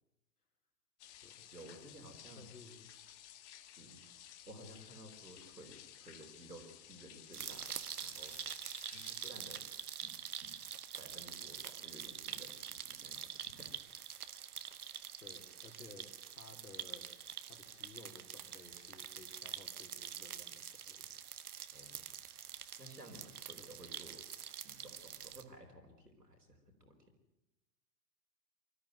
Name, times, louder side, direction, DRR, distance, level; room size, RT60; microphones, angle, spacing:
sound 1, 1.0-9.3, left 11 dB, 45° left, 1.7 m, -56 dB
voice 1, 1.5-2.5 3.8-3.9 4.4-8.4 8.8-9.6 10.0-10.5 11.0-13.8 14.3-14.4 21.7-22.1 22.8-24.2 24.6-26.9, right 1 dB, 90° right, 2 dB, 4.7 m, -55 dB
voice 2, 2.4-3.0 3.8-4.1 9.2-9.4 15.2-16.1 16.4-17.1 17.4-21.1 23.6-23.8, left 3 dB, 75° left, 4 dB, 3.9 m, -57 dB
sound 2, 7.3-25.4, right 9 dB, 70° right, 1.4 m, -46 dB
24.5 x 14.0 x 9.1 m, 0.96 s
figure-of-eight pair, 100°, 47 cm